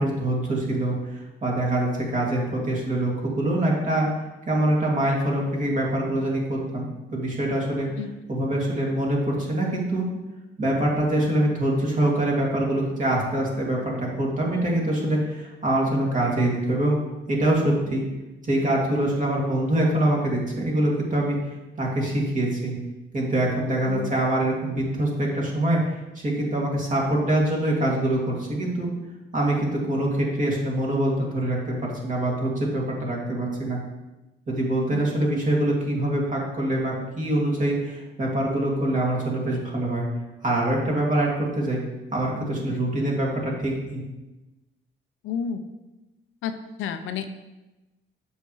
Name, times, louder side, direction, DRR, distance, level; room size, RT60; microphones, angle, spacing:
voice 1, 0.0-4.1 4.5-7.9 8.3-10.1 10.6-17.0 17.3-18.0 18.4-21.4 21.8-22.7 23.1-25.8 26.2-28.9 29.3-33.8 34.5-40.0 40.4-41.8 42.1-44.0, right 1 dB, 40° right, -2 dB, 2.3 m, -24 dB
voice 2, 45.2-45.6 46.4-47.4, left 7 dB, 85° left, 9 dB, 0.6 m, -31 dB
6.9 x 6.4 x 3.1 m, 1.0 s
cardioid pair, 90°, 20 cm